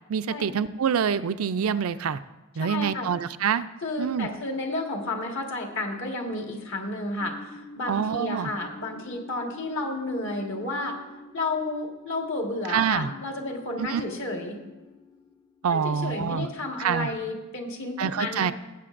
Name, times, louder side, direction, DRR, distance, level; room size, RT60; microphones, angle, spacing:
voice 1, 0.1-2.2 2.6-3.6 4.0-4.3 7.9-8.5 12.7-13.1 13.8-14.0 15.6-16.5 16.8-17.1 18.0-18.5, right 7 dB, 85° right, 12 dB, 0.4 m, -26 dB
voice 2, 2.6-3.1 3.8-11.0 11.3-14.6 15.7-18.5, left 2 dB, 65° left, 2 dB, 1.6 m, -32 dB
sound 1, 5.6-16.5, left 2 dB, 20° left, 0.5 m, -48 dB
18.0 x 8.3 x 2.5 m, 1.1 s
head